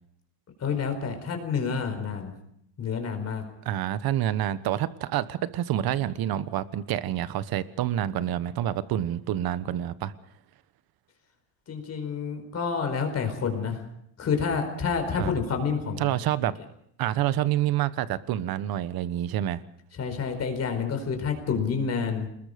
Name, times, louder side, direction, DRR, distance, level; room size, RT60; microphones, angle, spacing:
voice 1, 0.6-2.3 2.8-3.4 11.7-13.8 14.2-16.2 20.0-22.3, left 5 dB, 30° left, 5 dB, 4.6 m, -28 dB
voice 2, 3.6-10.1 15.1-15.3 16.0-16.5 17.0-19.6, right 12 dB, 45° right, 15 dB, 1.2 m, -27 dB
28.5 x 20.5 x 5.1 m, 0.71 s
cardioid pair, 150°, 49 cm